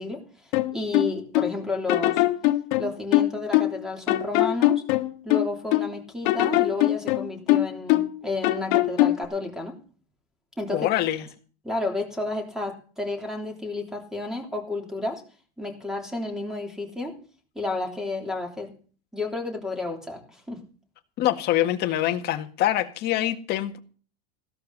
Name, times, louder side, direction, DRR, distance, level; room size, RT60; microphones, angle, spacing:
voice 1, 0.0-2.2 2.8-4.8 5.2-9.8 10.6-10.9 11.6-15.2 15.6-17.2 17.5-18.7 19.1-20.6, left 2 dB, ahead, 3 dB, 3.2 m, -31 dB
sound 1, 0.5-1.5 1.9-3.8 4.1-5.9 6.2-8.2 8.4-9.2, left 16 dB, 55° left, 1.4 m, -22 dB
voice 2, 10.7-11.3 21.2-23.8, left 13 dB, 35° left, 5 dB, 1.8 m, -25 dB
16.0 x 13.0 x 4.1 m, 0.40 s
supercardioid pair, 155°, 30 cm